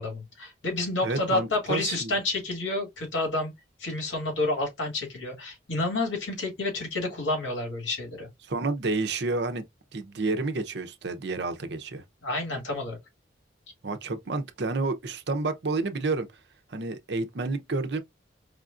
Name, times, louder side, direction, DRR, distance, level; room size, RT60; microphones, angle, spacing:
voice 1, 0.0-3.5 3.8-8.3 12.2-13.0, left 2 dB, 90° left, 2.3 m, -29 dB
voice 2, 1.0-2.1 8.4-9.6 9.9-12.0 13.8-16.3 16.7-18.0, right 3 dB, 60° right, 0.7 m, -30 dB
4.9 x 2.4 x 2.5 m
head